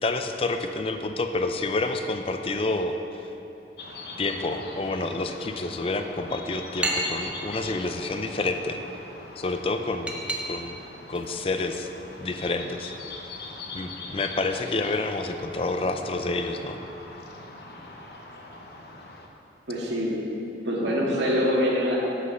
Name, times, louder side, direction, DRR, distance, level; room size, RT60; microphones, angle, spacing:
voice 1, 0.0-3.0 4.2-8.8 9.4-10.1 10.4-10.8 11.1-11.9 12.2-12.9 13.7-16.8, left 2 dB, 30° left, 6 dB, 0.5 m, -28 dB
sound 1, 3.8-19.3, left 3 dB, 65° left, 0.9 m, -42 dB
sound 2, 6.0-16.0, right 1 dB, 5° right, 0.8 m, -38 dB
voice 2, 19.7-20.2 20.6-22.0, equal, 85° right, -4 dB, 2.1 m, -24 dB
8.2 x 8.1 x 5.6 m, 2.9 s
head